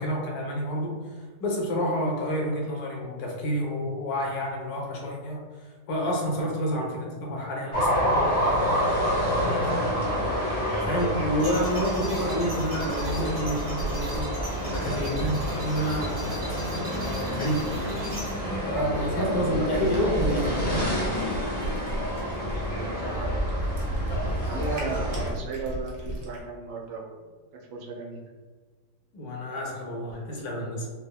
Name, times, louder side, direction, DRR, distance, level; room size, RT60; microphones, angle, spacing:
voice 1, 0.0-5.4 5.9-8.8 9.2-14.3 14.6-17.7 18.6-21.0 29.1-30.9, equal, 70° left, -1 dB, 1.0 m, -29 dB
sound 1, 7.7-25.3, equal, 35° left, 0.7 m, -28 dB
sound 2, 10.9-18.7, right 1 dB, 35° right, 1.1 m, -37 dB
Cat, 17.4-26.4, right 1 dB, 65° right, 1.1 m, -38 dB
voice 2, 22.7-23.4 24.4-27.3 27.7-28.2, right 3 dB, 85° right, -1 dB, 1.2 m, -36 dB
3.6 x 2.0 x 2.2 m, 1.4 s
omnidirectional pair, 1.8 m